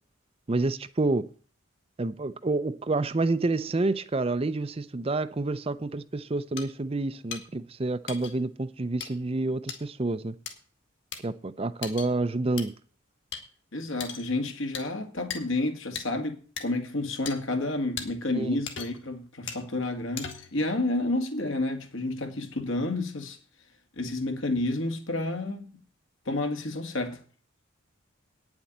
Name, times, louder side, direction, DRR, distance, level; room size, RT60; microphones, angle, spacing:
voice 1, 0.5-1.3 2.0-10.3 11.2-12.7 18.3-18.6, right 2 dB, 30° right, 0.5 m, -28 dB
sound 1, 6.6-6.7 7.3-7.4 8.1-8.3 9.0-9.1 9.7-9.8 10.5-10.6 11.1-11.2 11.8-12.1 12.6-12.7 13.3-13.4 14.0-14.3 14.7-14.9 15.3-15.4 16.0-16.1 16.6-16.7 17.3-17.4 18.0-18.1 18.7-19.1 19.5-19.6 20.2-20.6, left 7 dB, 60° left, 2.2 m, -37 dB
voice 2, 13.7-23.4 24.0-25.7 26.3-27.2, left 2 dB, 75° left, 2.1 m, -30 dB
9.6 x 7.2 x 7.8 m
head